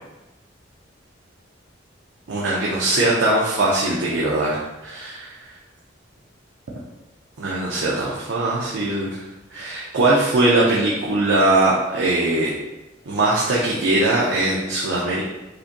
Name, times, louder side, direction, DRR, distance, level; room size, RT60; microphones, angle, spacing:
voice 1, 2.3-5.4 7.4-9.2 9.5-12.5 13.1-15.2, right 2 dB, 75° right, -5 dB, 0.6 m, -21 dB
4.9 x 2.2 x 2.8 m, 1.1 s
head